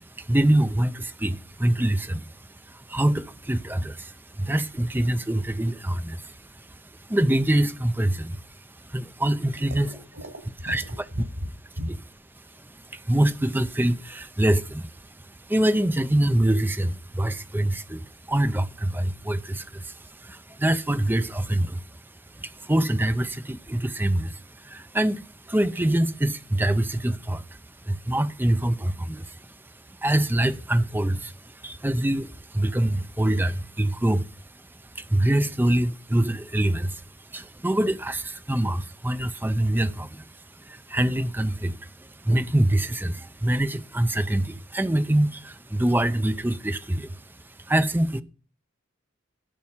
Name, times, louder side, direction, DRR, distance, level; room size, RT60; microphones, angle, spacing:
voice 1, 0.2-2.3 2.7-6.7 7.1-8.4 8.8-9.9 10.7-10.8 12.6-14.9 15.1-21.8 22.3-27.5 27.8-29.5 29.9-34.3 34.9-37.0 37.3-40.2 40.6-47.2 47.7-48.2, right 1 dB, 10° right, 0.6 m, -25 dB
voice 2, 9.7-11.5 11.8-11.9, equal, 90° right, 5.3 m, -35 dB
14.0 x 5.4 x 7.3 m
head